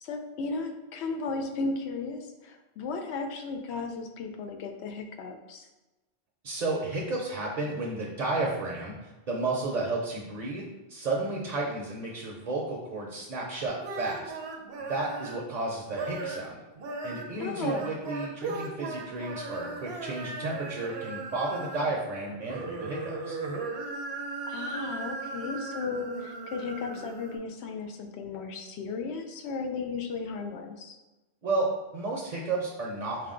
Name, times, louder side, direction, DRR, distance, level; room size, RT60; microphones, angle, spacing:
voice 1, 0.0-5.7 17.4-17.9 24.5-31.0, left 4 dB, 80° left, 4 dB, 0.8 m, -35 dB
voice 2, 6.4-14.3 14.8-16.6 17.0-23.4 31.4-33.3, right 2 dB, 50° right, -2 dB, 0.6 m, -32 dB
sound 1, 13.6-15.5 15.9-16.5 16.8-22.0 22.3-27.4, right 3 dB, 75° right, 0.9 m, -37 dB
4.9 x 2.2 x 3.7 m, 1.1 s
omnidirectional pair, 1.1 m